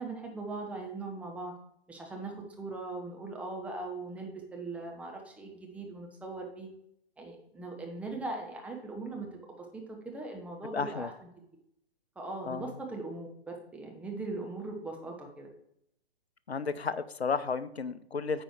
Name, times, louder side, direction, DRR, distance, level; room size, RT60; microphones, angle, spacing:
voice 1, 0.0-1.5 1.9-6.7 7.2-11.1 12.2-15.5, right 3 dB, 5° right, 0 dB, 0.9 m, -40 dB
voice 2, 10.7-11.1 12.5-12.7 16.5-18.4, left 5 dB, 90° left, 15 dB, 0.6 m, -33 dB
9.0 x 4.5 x 4.6 m, 0.75 s
figure-of-eight pair, 125°, 31 cm